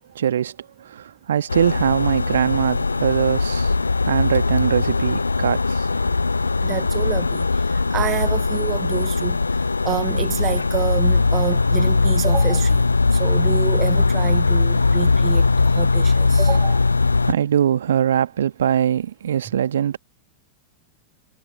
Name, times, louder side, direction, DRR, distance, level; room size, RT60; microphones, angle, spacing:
voice 1, 0.1-3.8 4.1-5.9 17.2-20.0, right 9 dB, 65° right, 1.5 m, -22 dB
sound 1, 1.5-17.3, left 3 dB, 80° left, 0.7 m, -20 dB
voice 2, 6.6-9.4 9.8-12.8 13.1-16.9, right 12 dB, 30° right, 0.6 m, -28 dB
figure-of-eight pair, 90°, 0 cm